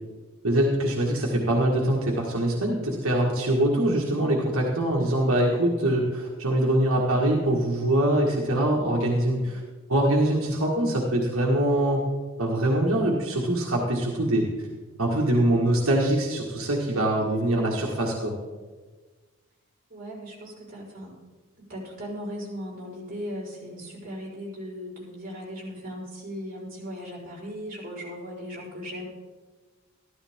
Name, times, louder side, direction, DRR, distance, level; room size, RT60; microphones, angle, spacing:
voice 1, 0.4-9.6 9.9-12.0 12.4-14.4 15.0-18.3, right 1 dB, 80° right, -2 dB, 1.8 m, -23 dB
voice 2, 9.3-9.6 17.1-18.0 19.9-21.2 21.7-29.0, equal, 40° right, -6 dB, 4.7 m, -38 dB
14.0 x 13.0 x 3.6 m, 1.3 s
head